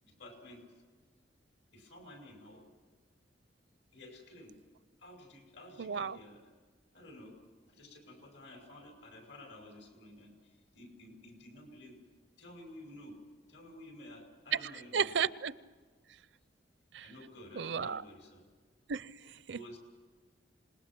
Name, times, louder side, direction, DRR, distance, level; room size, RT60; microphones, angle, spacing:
voice 1, 0.0-0.6 1.7-2.6 3.9-4.6 5.0-6.4 6.9-7.4 7.7-12.0 12.4-13.2 13.5-15.1 17.0-18.4 19.5-19.8, left 1 dB, 75° left, 3 dB, 5.7 m, -52 dB
voice 2, 5.8-6.2 14.9-15.5 16.9-17.1 17.5-18.0 18.9-19.6, right 6 dB, 70° right, 17 dB, 0.5 m, -34 dB
27.0 x 20.5 x 6.0 m, 1.5 s
head